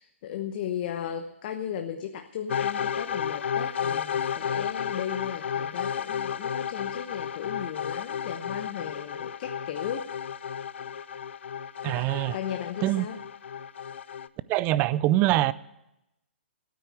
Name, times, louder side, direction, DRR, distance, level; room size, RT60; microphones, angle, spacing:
voice 1, 0.0-10.1 12.0-13.2, left 9 dB, 45° left, 7 dB, 1.0 m, -36 dB
sound 1, 2.5-14.3, left 8 dB, 65° left, 0.6 m, -32 dB
voice 2, 11.8-12.4 12.8-13.1 14.5-15.5, right 15 dB, 25° right, 18 dB, 0.4 m, -24 dB
13.0 x 9.4 x 8.3 m, 0.86 s
hypercardioid pair, 135°, 7 cm